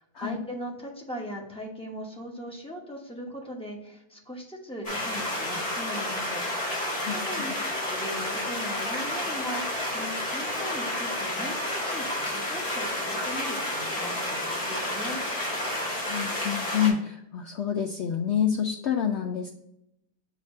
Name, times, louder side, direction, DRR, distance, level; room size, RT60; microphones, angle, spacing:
voice 1, 0.0-6.4 6.7-15.2, equal, 5° left, -2 dB, 0.8 m, -39 dB
sound 1, 4.8-16.9, left 1 dB, 20° left, 2.0 m, -30 dB
voice 2, 16.1-19.5, left 8 dB, 90° left, 4 dB, 0.6 m, -27 dB
6.6 x 2.8 x 5.3 m, 0.80 s
omnidirectional pair, 1.7 m